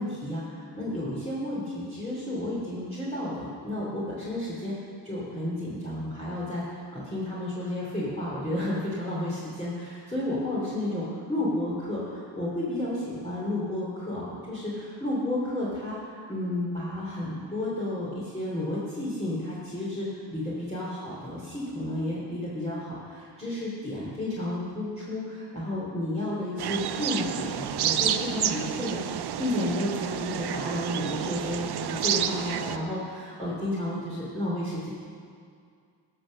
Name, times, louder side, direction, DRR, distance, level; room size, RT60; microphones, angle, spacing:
voice 1, 0.0-4.7 5.0-34.9, left 1 dB, 15° left, -8 dB, 3.0 m, -32 dB
sound 1, 26.6-32.8, right 10 dB, 65° right, 0.6 m, -30 dB
12.5 x 6.2 x 6.4 m, 2.3 s
cardioid pair, 55°, 42 cm